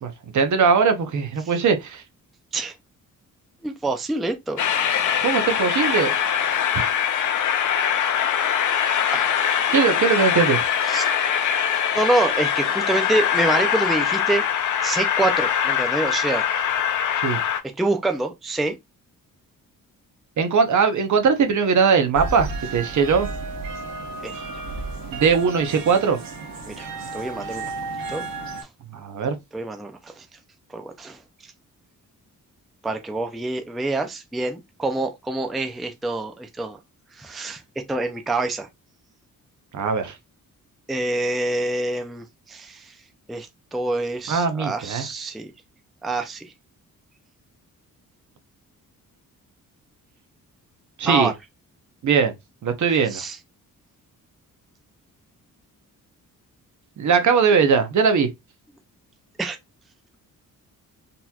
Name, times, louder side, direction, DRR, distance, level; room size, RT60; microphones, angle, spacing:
voice 1, 0.0-2.0 5.2-6.1 9.7-10.6 17.2-17.4 20.4-23.3 25.1-26.2 28.9-29.4 39.7-40.1 44.3-45.1 51.0-51.3 52.0-52.3 52.6-53.2 57.0-58.3, right 6 dB, 60° right, 0.8 m, -20 dB
voice 2, 3.6-4.6 9.1-9.3 10.9-11.1 11.9-14.4 14.8-16.4 17.8-18.8 24.2-24.3 26.7-27.7 28.1-28.3 29.5-30.3 30.7-31.5 32.8-36.8 37.1-37.6 37.9-38.7 40.9-42.9 43.3-45.5 46.0-46.5 51.1-51.3 53.1-53.4 59.4-59.6, right 2 dB, ahead, 0.4 m, -26 dB
Train, 4.6-17.6, left 8 dB, 60° left, 0.6 m, -22 dB
sound 1, 22.1-28.6, right 3 dB, 75° right, 1.1 m, -33 dB
4.0 x 2.8 x 2.3 m
cardioid pair, 115°, 34 cm